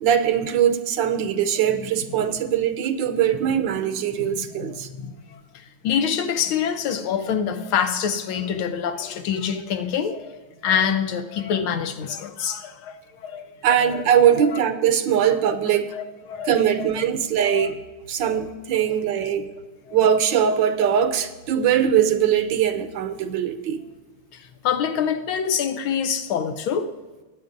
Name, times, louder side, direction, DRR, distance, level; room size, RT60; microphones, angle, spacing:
voice 1, 0.0-4.9 13.6-15.9 16.4-17.8 18.1-19.5 19.9-23.8, right 9 dB, 70° right, 1.3 m, -21 dB
voice 2, 4.2-13.0 13.2-13.5 13.9-14.0 14.4-14.6 15.2-15.4 15.7-16.9 17.5-17.7 18.3-18.4 18.8-18.9 19.9-20.0 24.3-26.9, left 7 dB, 80° left, 1.6 m, -26 dB
19.5 x 8.7 x 2.6 m
omnidirectional pair, 2.3 m